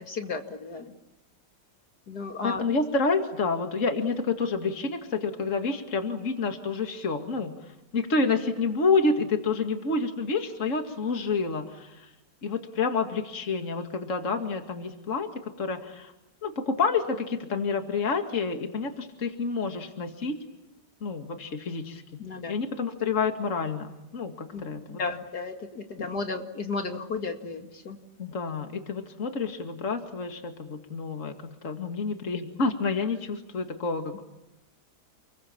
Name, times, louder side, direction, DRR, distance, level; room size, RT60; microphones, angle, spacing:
voice 1, 0.1-0.9 2.1-2.6 22.2-22.6 24.5-28.0, left 4 dB, 70° left, 4 dB, 2.8 m, -34 dB
voice 2, 2.4-7.5 7.9-12.1 12.4-15.3 15.6-16.1 16.4-20.4 21.0-22.2 22.5-25.0 26.0-26.1 28.2-34.2, left 4 dB, 50° left, 5 dB, 2.4 m, -29 dB
30.0 x 22.5 x 8.6 m, 0.95 s
omnidirectional pair, 1.8 m